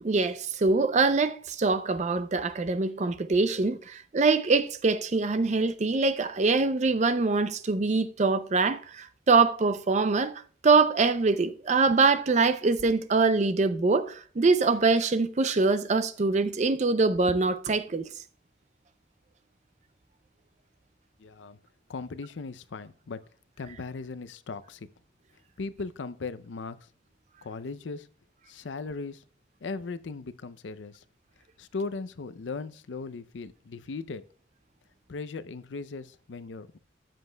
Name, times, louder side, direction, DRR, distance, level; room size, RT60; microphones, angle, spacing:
voice 1, 0.0-18.1, right 4 dB, 40° right, 0.5 m, -24 dB
voice 2, 21.2-21.6 21.9-23.2 23.6-24.9 25.6-26.8 27.4-28.1 28.5-29.2 29.6-31.0 31.6-34.2 35.1-36.8, left 4 dB, 85° left, 0.5 m, -38 dB
13.0 x 7.5 x 2.2 m
head